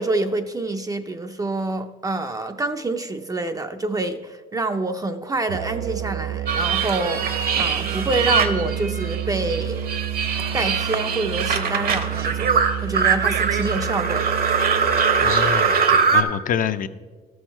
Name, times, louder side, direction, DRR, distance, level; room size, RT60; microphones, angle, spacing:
voice 1, 0.0-9.9 10.5-12.5 12.8-14.3, right 2 dB, 20° right, 7 dB, 0.5 m, -27 dB
Musical instrument, 5.5-15.4, right 10 dB, 90° right, 0.4 m, -30 dB
sound 1, 6.5-9.2 9.5-16.2, right 6 dB, 55° right, 0.9 m, -22 dB
voice 2, 15.2-16.9, left 9 dB, 45° left, 11 dB, 0.5 m, -26 dB
13.0 x 6.4 x 4.4 m, 1.4 s
cardioid pair, 100°, 19 cm